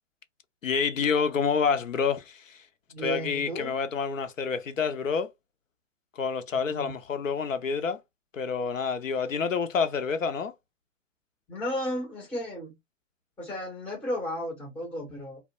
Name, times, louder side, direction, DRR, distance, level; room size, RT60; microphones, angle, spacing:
voice 1, 0.6-2.6 3.0-5.3 6.2-8.0 8.3-10.5, left 6 dB, 90° left, 0.6 m, -28 dB
voice 2, 2.9-3.7 6.5-6.9 11.5-12.7 13.4-15.4, left 1 dB, 5° left, 0.5 m, -34 dB
2.3 x 2.1 x 2.7 m
figure-of-eight pair, 125°, 38 cm